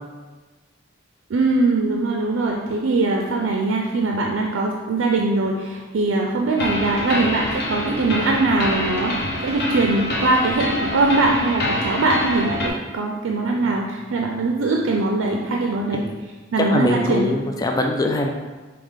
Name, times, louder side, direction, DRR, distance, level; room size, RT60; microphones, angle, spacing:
voice 1, 1.3-16.0 16.5-17.3, right 2 dB, 85° right, 0 dB, 0.4 m, -21 dB
sound 1, 6.6-12.7, left 1 dB, 55° left, 0.8 m, -26 dB
voice 2, 16.6-18.3, left 1 dB, 20° left, 2 dB, 0.3 m, -22 dB
4.9 x 2.9 x 3.6 m, 1.3 s
head